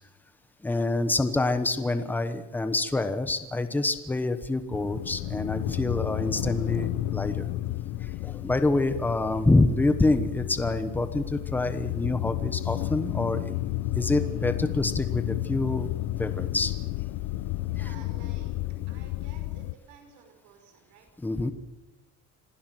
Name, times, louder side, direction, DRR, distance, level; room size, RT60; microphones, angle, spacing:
voice 1, 0.6-7.5 8.0-13.5 13.9-15.9 16.2-16.7 17.8-17.9 21.2-21.5, left 2 dB, 5° left, 10 dB, 1.1 m, -26 dB
sound 1, 4.7-19.7, left 16 dB, 65° left, 0.9 m, -32 dB
voice 2, 17.7-18.6 18.9-21.1, right 7 dB, 75° right, 4 dB, 5.5 m, -53 dB
26.0 x 16.5 x 7.8 m, 1.0 s
cardioid pair, 170°, 31 cm